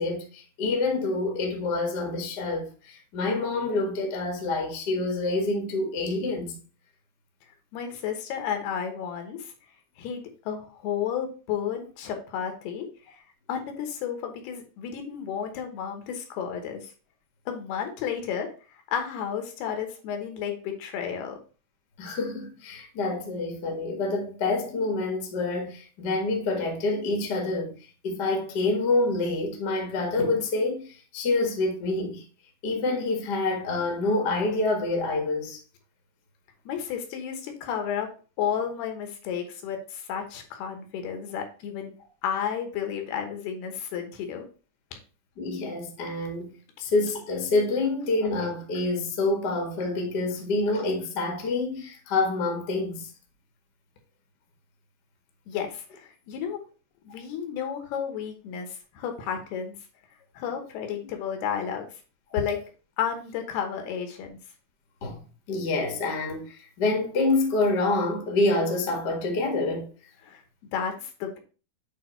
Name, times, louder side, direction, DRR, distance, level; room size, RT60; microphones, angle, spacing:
voice 1, 0.0-6.5 22.0-27.7 28.0-32.2 32.6-35.6 45.4-53.1 65.0-65.2 65.5-69.9, left 2 dB, 45° left, 1.3 m, -27 dB
voice 2, 7.7-9.5 10.0-13.2 13.5-16.9 17.5-18.5 18.9-21.4 36.7-38.1 38.4-41.9 42.2-44.5 44.9-45.0 55.5-56.6 57.0-59.8 60.3-61.9 62.3-62.6 63.0-64.4 70.2-70.4 70.7-71.4, left 8 dB, 75° left, 3.0 m, -32 dB
8.6 x 3.4 x 4.4 m
omnidirectional pair, 4.7 m